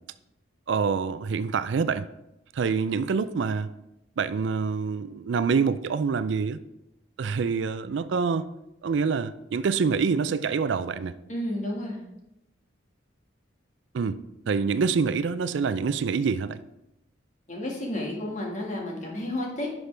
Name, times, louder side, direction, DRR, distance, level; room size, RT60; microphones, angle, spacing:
voice 1, 0.7-2.1 2.5-3.7 4.2-6.6 7.2-8.5 8.8-11.1 13.9-14.2 14.5-16.6, right 5 dB, 70° right, 0.4 m, -26 dB
voice 2, 11.3-12.0 17.5-19.7, left 1 dB, 40° left, 1.9 m, -31 dB
10.5 x 5.8 x 3.4 m
head